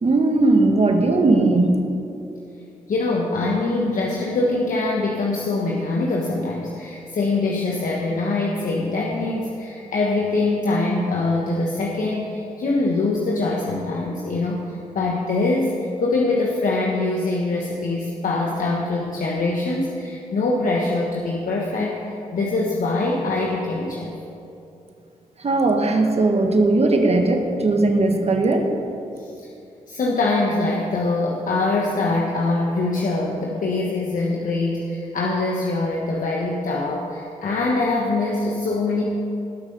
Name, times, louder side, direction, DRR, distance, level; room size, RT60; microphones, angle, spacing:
voice 1, 0.0-1.8 25.4-28.7, right 2 dB, 45° right, 4 dB, 1.7 m, -18 dB
voice 2, 2.9-24.1 29.2-29.3 29.9-39.0, left 2 dB, 65° left, -1 dB, 1.4 m, -23 dB
19.0 x 6.3 x 5.5 m, 2.7 s
cardioid pair, 60°, 14 cm